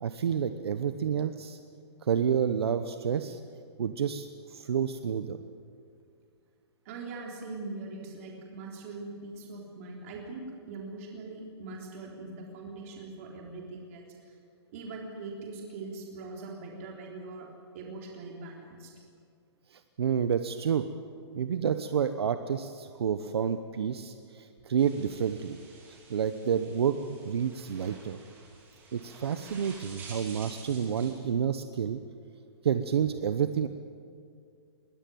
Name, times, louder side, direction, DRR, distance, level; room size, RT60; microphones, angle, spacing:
voice 1, 0.0-1.6 2.0-3.4 3.8-5.4 19.7-20.9 21.3-25.6 25.9-28.2 28.9-32.0 32.6-33.7, right 8 dB, 65° right, 9 dB, 1.0 m, -29 dB
voice 2, 6.9-14.0 14.7-17.5 17.7-18.9, right 3 dB, 30° right, -1 dB, 3.7 m, -41 dB
sound 1, 24.8-31.2, right 4 dB, 15° right, 3.1 m, -50 dB
22.0 x 17.0 x 9.3 m, 2.3 s
hypercardioid pair, 170°, 14 cm